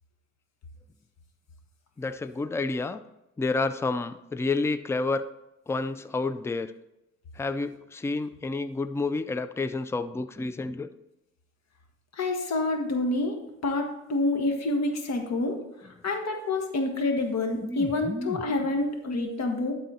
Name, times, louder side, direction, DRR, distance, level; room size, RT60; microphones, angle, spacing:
voice 1, 2.0-3.0 3.4-5.3 5.7-6.7 7.4-10.9 15.8-15.9 17.6-18.4, left 3 dB, 10° left, 12 dB, 0.4 m, -30 dB
voice 2, 12.1-15.6 16.0-19.7, left 2 dB, 60° left, 4 dB, 1.5 m, -28 dB
11.5 x 4.2 x 4.2 m, 0.91 s
cardioid pair, 90°, 30 cm